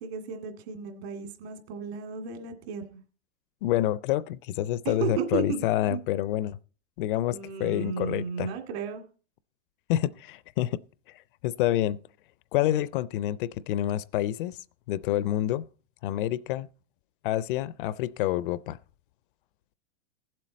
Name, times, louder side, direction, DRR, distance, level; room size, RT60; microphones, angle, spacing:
voice 1, 0.0-3.0 4.8-6.0 7.3-9.0, right 6 dB, 65° right, 2.3 m, -34 dB
voice 2, 3.6-6.6 7.0-8.5 9.9-10.8 11.1-12.0 12.5-14.6 14.9-15.6 16.0-16.7 17.2-18.8, left 13 dB, 50° left, 0.4 m, -28 dB
16.0 x 7.6 x 4.0 m
supercardioid pair, 145°, 34 cm